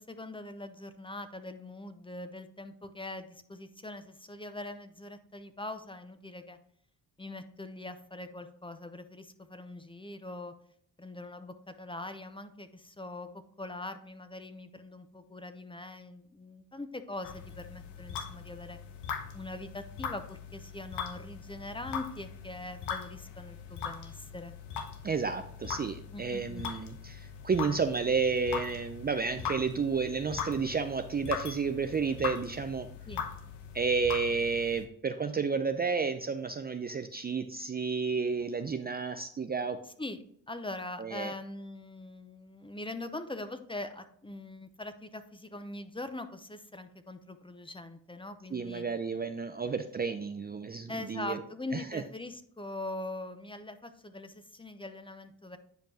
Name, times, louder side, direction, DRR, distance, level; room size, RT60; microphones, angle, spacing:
voice 1, 0.0-6.6 7.2-10.5 11.0-13.3 13.6-18.8 19.3-24.6 26.1-26.7 33.1-33.2 40.0-40.2 40.5-48.8 50.9-55.6, left 2 dB, 15° left, 10 dB, 0.7 m, -42 dB
sound 1, 17.2-34.9, left 7 dB, 80° left, 0.9 m, -41 dB
voice 2, 25.0-32.9 33.7-39.8 41.0-41.3 48.5-51.4 51.7-52.0, right 5 dB, 25° right, 8 dB, 0.5 m, -31 dB
9.1 x 5.1 x 2.8 m, 0.65 s
supercardioid pair, 60°, 41 cm